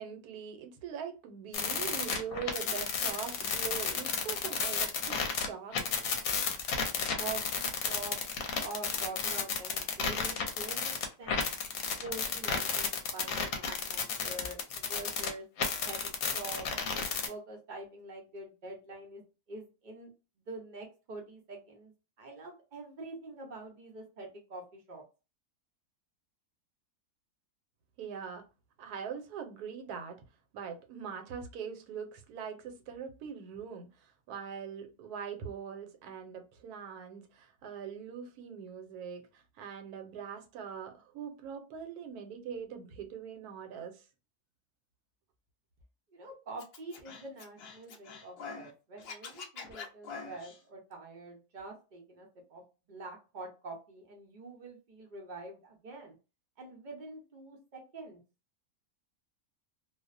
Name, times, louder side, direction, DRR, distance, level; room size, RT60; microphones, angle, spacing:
voice 1, 0.0-5.8 28.0-28.4 28.8-30.2 30.5-44.0, right 7 dB, 80° right, 1.1 m, -42 dB
sound 1, 1.5-5.5 5.7-15.3 15.6-17.3, left 5 dB, 65° left, 0.9 m, -32 dB
voice 2, 7.2-8.2 8.6-11.5 12.0-16.7 17.3-20.1 20.5-21.9 22.2-25.0 46.1-52.6 52.9-56.2 56.6-58.2, right 2 dB, 55° right, 0.5 m, -45 dB
Scratching (performance technique), 46.6-48.7 49.0-50.6, left 5 dB, 85° left, 0.5 m, -45 dB
2.6 x 2.0 x 2.4 m
omnidirectional pair, 1.7 m